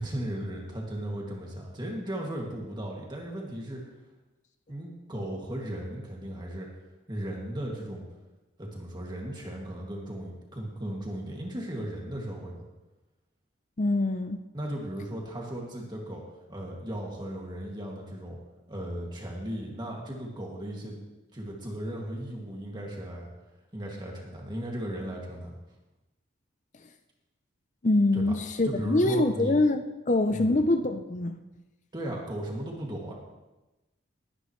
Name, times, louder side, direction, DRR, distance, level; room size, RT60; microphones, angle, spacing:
voice 1, 0.0-3.8 4.7-6.7 7.1-8.0 8.6-12.6 14.5-16.2 16.5-18.4 18.7-21.0 21.3-23.3 23.7-25.6 28.1-28.3 28.6-29.5 30.3-30.6 31.9-33.1, right 1 dB, 20° right, -2 dB, 2.2 m, -36 dB
voice 2, 13.8-14.4 27.8-31.4, left 2 dB, 35° left, 8 dB, 0.5 m, -24 dB
20.5 x 9.8 x 3.2 m, 1.0 s
head